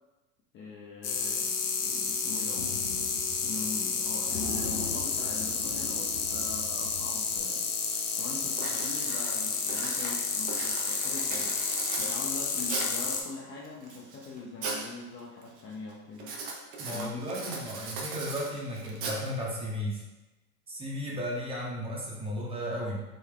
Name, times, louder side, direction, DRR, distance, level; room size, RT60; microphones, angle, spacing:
voice 1, 0.5-2.7 3.4-7.7 8.1-11.6 12.0-16.4 16.9-17.3, left 3 dB, 30° left, -3 dB, 0.5 m, -42 dB
sound 1, 1.0-13.2, left 5 dB, 60° left, 0.8 m, -31 dB
sound 2, 2.6-3.6 3.8-4.0 4.3-7.6, left 3 dB, 90° left, 0.8 m, -41 dB
Writing, 7.4-7.5 7.9-8.2 8.5-13.1 13.6-14.9 15.2-15.6 16.2-19.6, right 3 dB, 70° right, 1.0 m, -38 dB
voice 2, 16.8-20.0 20.7-23.0, equal, 15° right, -3 dB, 0.7 m, -34 dB
3.7 x 2.1 x 3.7 m, 1.1 s
hypercardioid pair, 105°, 43 cm